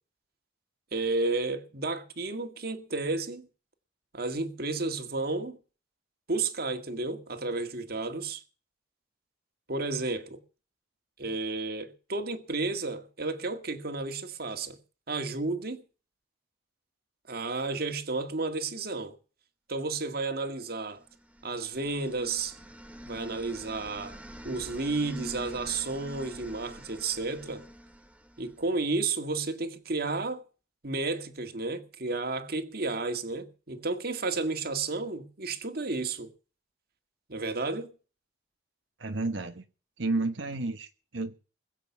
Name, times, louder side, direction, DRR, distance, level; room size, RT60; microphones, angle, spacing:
voice 1, 0.9-3.5 4.1-5.6 6.3-8.4 9.7-10.4 11.2-14.8 15.1-15.8 17.3-19.2 19.7-21.0 21.4-22.6 23.0-24.2 24.4-27.6 28.4-30.4 30.8-36.3 37.3-37.9, right 3 dB, 55° right, 1.9 m, -32 dB
sound 1, 21.0-29.0, equal, 10° right, 0.9 m, -46 dB
voice 2, 39.0-39.6 40.0-41.3, right 2 dB, 90° right, 1.2 m, -31 dB
21.5 x 7.8 x 7.2 m
head